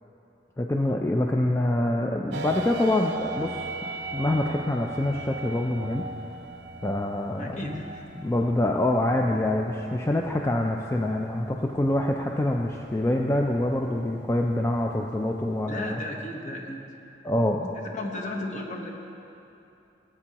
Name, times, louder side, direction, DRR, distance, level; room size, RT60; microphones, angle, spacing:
voice 1, 0.6-3.7 4.1-6.1 6.8-7.8 8.2-16.0 17.2-17.7, left 1 dB, 15° left, 1 dB, 0.4 m, -25 dB
sound 1, 2.3-15.9, right 3 dB, 75° right, 0.5 m, -40 dB
voice 2, 7.4-8.1 15.7-16.8 17.9-18.9, left 1 dB, 45° left, 0 dB, 1.1 m, -34 dB
18.0 x 8.5 x 2.9 m, 2.8 s
head